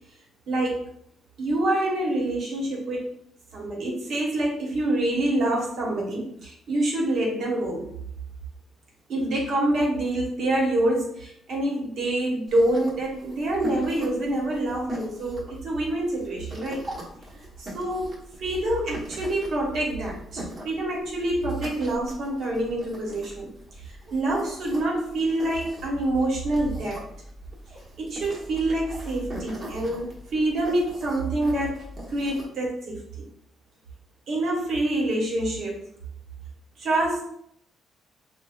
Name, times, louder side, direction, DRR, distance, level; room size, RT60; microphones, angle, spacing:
voice 1, 0.5-0.8 1.4-3.1 3.5-7.9 9.1-16.9 17.6-23.5 23.8-27.0 28.0-31.8 32.1-33.2 34.3-35.8 36.8-37.2, right 1 dB, 65° right, -2 dB, 1.0 m, -26 dB
sound 1, 12.5-32.5, equal, 40° right, 1.0 m, -41 dB
3.5 x 2.1 x 2.3 m, 0.70 s
cardioid pair, 90°, 0 cm